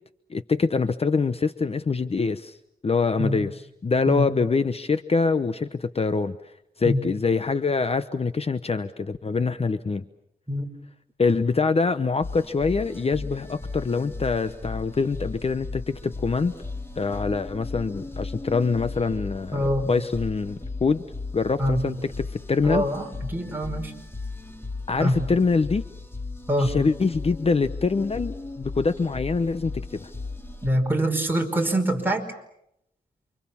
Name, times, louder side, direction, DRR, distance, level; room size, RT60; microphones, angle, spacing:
voice 1, 0.3-2.6 2.8-3.5 3.8-6.3 6.8-10.0 11.2-16.5 17.0-21.0 21.3-22.8 24.9-25.8 26.6-30.1, left 4 dB, 40° left, 11 dB, 0.9 m, -24 dB
voice 2, 4.1-4.4 6.8-7.0 10.5-10.7 19.5-19.9 21.6-21.9 22.6-23.9 25.0-25.2 26.5-26.8 30.6-32.2, equal, 15° right, 2 dB, 5.1 m, -24 dB
sound 1, 12.2-30.7, left 3 dB, 15° left, 2.6 m, -36 dB
29.0 x 25.5 x 7.2 m, 0.78 s
wide cardioid pair, 100°, 16 cm